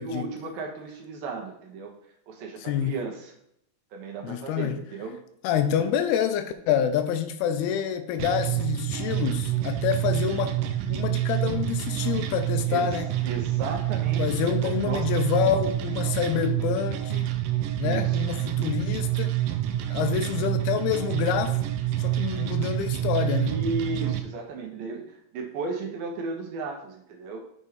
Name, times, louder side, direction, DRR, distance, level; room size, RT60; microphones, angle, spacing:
voice 1, 0.0-1.9 2.3-3.3 3.9-5.2 12.7-12.9 13.2-15.4 17.8-18.2 23.4-27.4, right 4 dB, 70° right, 2.7 m, -35 dB
voice 2, 2.6-2.9 4.2-4.8 5.4-10.6 10.9-13.1 14.2-17.3 17.8-19.3 19.9-21.6 22.0-23.5, left 9 dB, 85° left, 2.6 m, -27 dB
sound 1, 8.2-24.2, right 14 dB, 90° right, 1.8 m, -27 dB
7.0 x 4.3 x 4.9 m
omnidirectional pair, 4.6 m